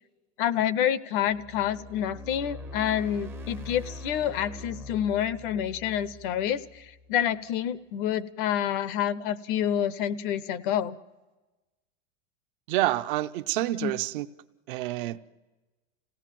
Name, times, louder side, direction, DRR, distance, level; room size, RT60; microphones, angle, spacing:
voice 1, 0.4-11.0 13.8-13.9, left 10 dB, 45° left, 19 dB, 0.8 m, -28 dB
sound 1, 1.2-7.4, left 1 dB, 5° right, 0.6 m, -43 dB
voice 2, 12.7-14.3 14.7-15.2, right 16 dB, 45° right, 11 dB, 0.7 m, -28 dB
26.5 x 17.5 x 7.5 m, 1.2 s
supercardioid pair, 160°, 36 cm